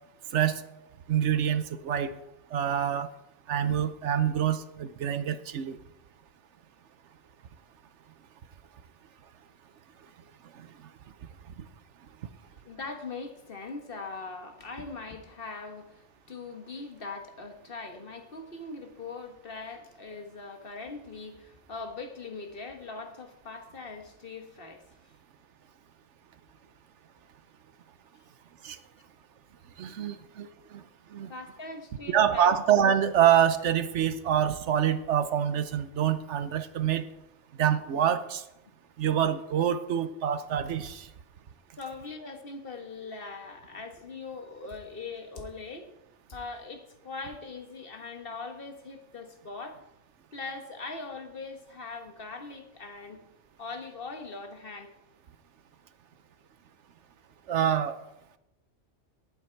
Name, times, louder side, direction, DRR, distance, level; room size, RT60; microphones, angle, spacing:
voice 1, 1.1-2.1 2.5-3.1 3.5-5.8 10.6-10.7 28.6-28.8 29.8-30.8 31.1-31.3 32.1-37.1 37.6-38.4 39.0-41.1 57.5-58.0, right 9 dB, 75° right, 12 dB, 1.1 m, -26 dB
voice 2, 12.6-24.8 30.1-30.2 31.3-32.5 41.8-45.9 46.3-49.8 50.3-53.2 53.6-54.9, left 3 dB, 50° left, 5 dB, 1.5 m, -41 dB
17.5 x 8.4 x 4.5 m, 0.89 s
omnidirectional pair, 1.2 m